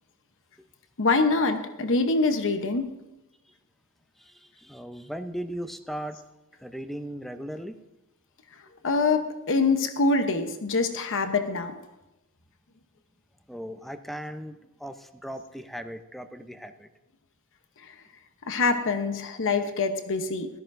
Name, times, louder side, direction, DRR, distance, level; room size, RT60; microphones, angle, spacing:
voice 1, 1.0-2.9 8.8-11.7 17.8-17.9 18.5-20.5, left 3 dB, 60° left, 7 dB, 0.9 m, -25 dB
voice 2, 4.2-6.2 6.6-7.8 13.5-16.9, equal, ahead, 8 dB, 0.6 m, -37 dB
17.0 x 13.0 x 2.6 m, 0.96 s
head